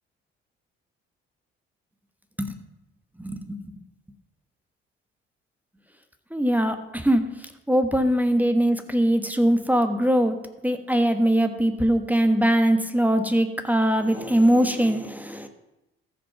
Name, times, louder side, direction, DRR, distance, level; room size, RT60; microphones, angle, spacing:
voice 1, 3.2-3.6 6.3-7.2 7.7-10.4 10.6-15.5, right 1 dB, 5° right, 8 dB, 1.2 m, -21 dB
14.0 x 5.2 x 5.9 m, 0.93 s
hypercardioid pair, 45°, 31 cm